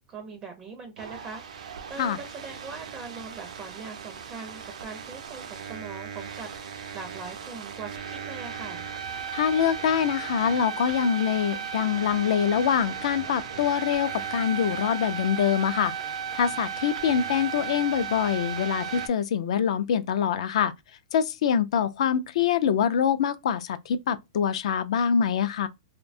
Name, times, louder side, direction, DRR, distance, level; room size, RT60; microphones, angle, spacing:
voice 1, 0.1-8.8, right 4 dB, 20° right, 0.4 m, -41 dB
sound 1, 1.0-19.1, right 7 dB, 90° right, 0.5 m, -36 dB
voice 2, 9.3-15.9 16.3-20.7 21.1-25.7, left 8 dB, 65° left, 0.3 m, -25 dB
2.6 x 2.1 x 2.4 m
supercardioid pair, 160°, 4 cm